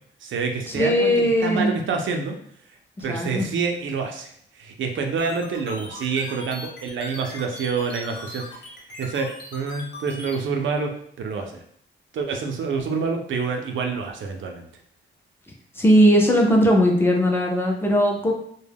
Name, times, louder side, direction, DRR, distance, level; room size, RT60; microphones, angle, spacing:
voice 1, 0.2-2.4 3.0-8.6 9.0-11.6 12.1-14.7, right 5 dB, 90° right, 3 dB, 0.5 m, -27 dB
voice 2, 0.7-1.7 3.1-3.5 15.8-18.3, equal, 10° left, 1 dB, 0.4 m, -18 dB
sound 1, 5.2-10.4, left 2 dB, 70° left, 0.8 m, -39 dB
2.2 x 2.0 x 3.3 m, 0.67 s
wide cardioid pair, 140°, 19 cm